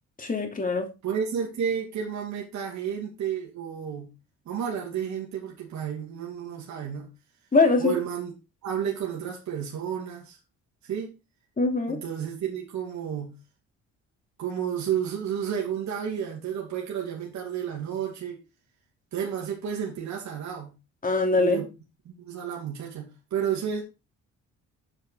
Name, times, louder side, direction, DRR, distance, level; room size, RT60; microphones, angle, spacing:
voice 1, 0.2-0.9 7.5-8.0 11.6-12.0 21.0-21.6, left 3 dB, 25° left, 3.0 m, -22 dB
voice 2, 1.0-4.1 4.4-7.1 7.8-8.3 8.6-10.4 10.8-11.1 11.9-13.3 14.4-18.4 19.1-20.7 21.4-21.7 22.0-23.8, right 8 dB, 65° right, 2.7 m, -31 dB
7.3 x 7.3 x 5.0 m
cardioid pair, 90°, 30 cm